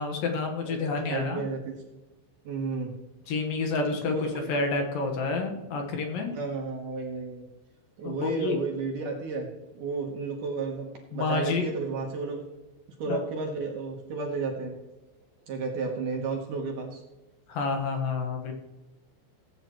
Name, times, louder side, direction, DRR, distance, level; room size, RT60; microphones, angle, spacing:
voice 1, 0.0-1.4 3.3-6.3 8.0-8.6 11.1-11.7 13.1-13.2 17.5-18.5, left 4 dB, 65° left, 2 dB, 2.6 m, -29 dB
voice 2, 0.6-1.7 2.4-2.9 4.1-4.6 6.3-7.5 8.0-9.5 9.7-10.9 11.1-12.4 13.0-14.7 15.5-17.0, right 4 dB, 65° right, 0 dB, 2.1 m, -32 dB
17.5 x 9.0 x 3.1 m, 1.1 s
omnidirectional pair, 5.3 m